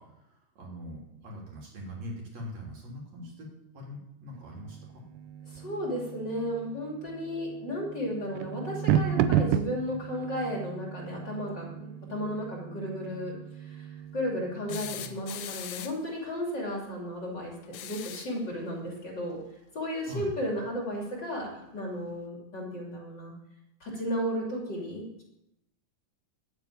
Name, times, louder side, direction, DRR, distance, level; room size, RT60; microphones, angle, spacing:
voice 1, 0.0-3.5 3.7-5.0 14.6-15.2 20.1-20.3, left 1 dB, 55° right, -2 dB, 4.4 m, -42 dB
sound 1, 4.3-15.1, right 9 dB, 85° right, 2.3 m, -33 dB
voice 2, 5.5-19.4 19.7-23.3 23.8-25.2, equal, 35° left, -2 dB, 3.1 m, -34 dB
sound 2, 14.7-16.1 17.6-18.4 20.1-20.2 21.6-21.7, left 10 dB, 75° left, 1.5 m, -41 dB
11.5 x 9.2 x 8.6 m, 0.86 s
omnidirectional pair, 3.8 m